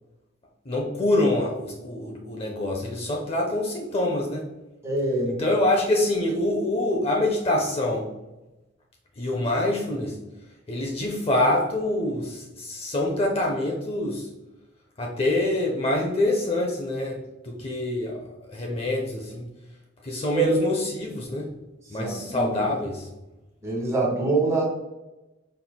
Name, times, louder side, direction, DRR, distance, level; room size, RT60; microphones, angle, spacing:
voice 1, 0.7-4.5 5.2-8.1 9.2-10.2 10.7-14.3 15.0-19.5 20.0-21.5 21.9-23.1, left 1 dB, 30° left, 0 dB, 0.5 m, -25 dB
voice 2, 4.8-5.4 20.3-20.6 22.0-22.5 23.6-24.6, right 3 dB, 15° right, -3 dB, 1.5 m, -24 dB
5.2 x 4.3 x 2.2 m, 1.0 s
head